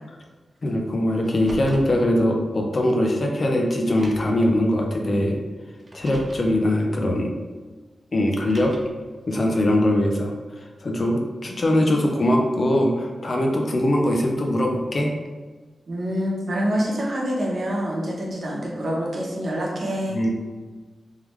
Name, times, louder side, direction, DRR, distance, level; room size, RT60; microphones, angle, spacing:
voice 1, 0.6-5.4 5.9-7.3 8.1-8.7 9.3-10.3 10.8-15.1 20.1-20.3, left 1 dB, 45° left, 1 dB, 0.6 m, -21 dB
Car, 1.2-2.0 3.1-3.2 3.9-4.5 5.8-6.5 8.3-9.0, equal, 35° right, 0.7 m, -39 dB
voice 2, 15.9-20.2, equal, 55° right, -3 dB, 0.9 m, -26 dB
3.6 x 3.3 x 3.1 m, 1.3 s
wide cardioid pair, 105°, 0 cm